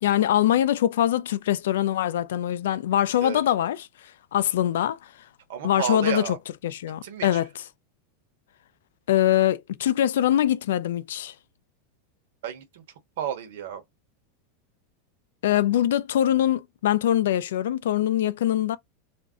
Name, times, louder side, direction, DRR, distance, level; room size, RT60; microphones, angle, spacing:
voice 1, 0.0-3.8 4.3-5.0 5.6-6.2 6.6-7.5 9.1-11.3 15.4-18.8, left 11 dB, 90° left, 0.3 m, -23 dB
voice 2, 5.5-6.4 7.0-7.5 12.4-12.8 13.2-13.8, right 9 dB, 65° right, 0.9 m, -32 dB
2.5 x 2.1 x 3.5 m
supercardioid pair, 175°, 0 cm